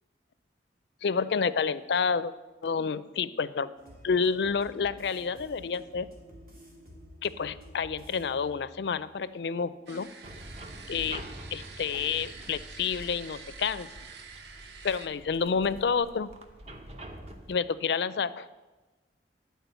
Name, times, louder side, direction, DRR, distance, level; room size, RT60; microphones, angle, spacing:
voice 1, 1.0-2.3 2.6-3.7 4.0-6.1 7.2-10.1 10.9-11.2 11.5-13.9 14.8-16.3 17.5-18.5, left 5 dB, 65° left, 15 dB, 0.4 m, -29 dB
sound 1, 3.8-9.8 10.2-10.3, equal, 50° right, 2.3 m, -51 dB
sound 2, 9.9-15.1, right 5 dB, 70° right, 0.8 m, -47 dB
sound 3, 10.2-17.6, right 1 dB, 35° right, 0.8 m, -46 dB
10.5 x 4.6 x 8.0 m, 1.2 s
head